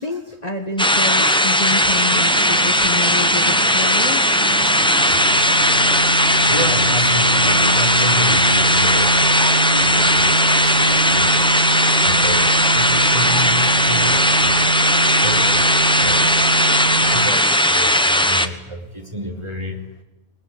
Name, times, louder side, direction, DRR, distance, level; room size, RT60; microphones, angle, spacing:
voice 1, 0.0-4.2, left 2 dB, 30° left, 5 dB, 1.8 m, -27 dB
sound 1, 0.8-18.5, equal, 5° left, 1.1 m, -17 dB
sound 2, 1.7-17.3, right 3 dB, 50° right, 1.3 m, -25 dB
voice 2, 5.6-5.9 6.5-9.1 9.7-10.3 10.6-11.4 12.0-14.6 15.2-15.6 16.0-16.4 17.0-19.8, equal, 20° right, 3 dB, 3.3 m, -30 dB
22.5 x 21.0 x 9.7 m, 0.95 s
omnidirectional pair, 1.3 m